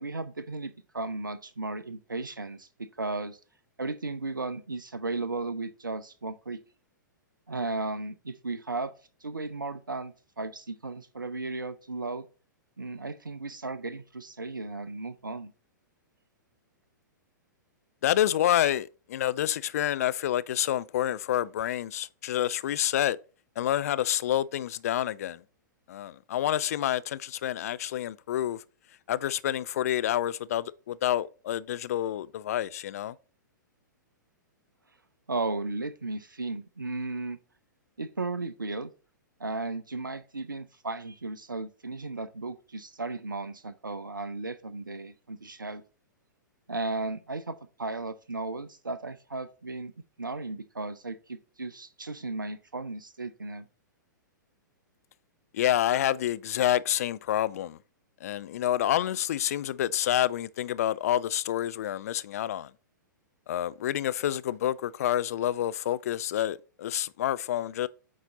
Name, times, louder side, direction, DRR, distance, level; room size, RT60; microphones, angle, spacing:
voice 1, 0.0-3.4 3.8-6.6 7.5-8.9 9.2-12.3 12.8-15.5 35.3-37.4 38.0-38.9 39.4-45.8 46.7-49.9 50.2-53.6, right 3 dB, 85° right, 0.5 m, -35 dB
voice 2, 18.0-23.2 23.6-25.4 25.9-28.6 29.1-33.2 55.5-57.8 58.2-62.7 63.5-67.9, left 12 dB, 50° left, 0.4 m, -28 dB
8.5 x 4.0 x 3.9 m
figure-of-eight pair, 110°, 11 cm